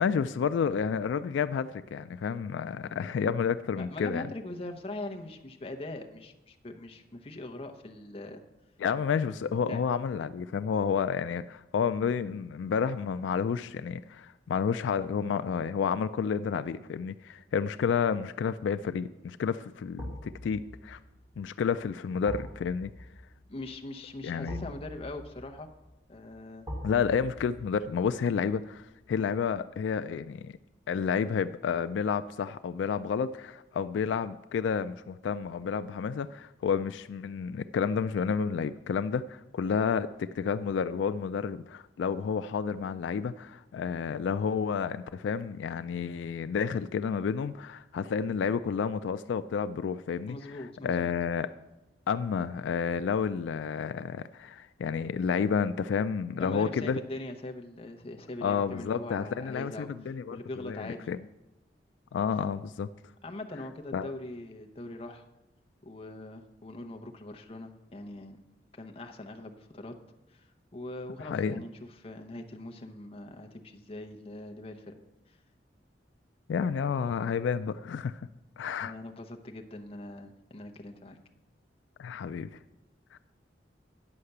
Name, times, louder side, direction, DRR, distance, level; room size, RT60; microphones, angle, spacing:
voice 1, 0.0-4.3 8.8-21.0 21.4-22.9 24.2-24.7 26.8-30.5 30.9-50.4 50.8-51.5 52.1-57.0 58.4-61.2 62.1-62.9 63.9-64.1 71.2-71.5 76.5-78.2 78.6-78.9 82.0-82.5 83.1-83.2, left 6 dB, 85° left, 12 dB, 0.3 m, -30 dB
voice 2, 3.8-8.4 9.5-9.8 23.5-25.7 26.1-26.7 50.3-51.1 56.4-59.9 60.3-61.1 63.2-65.2 65.8-68.4 68.7-69.9 70.3-74.9 75.3-75.4 78.8-81.2, left 2 dB, 30° left, 4 dB, 0.8 m, -41 dB
sound 1, 20.0-31.0 31.3-31.4, equal, 15° right, 2.7 m, -45 dB
9.8 x 5.7 x 6.6 m, 0.99 s
head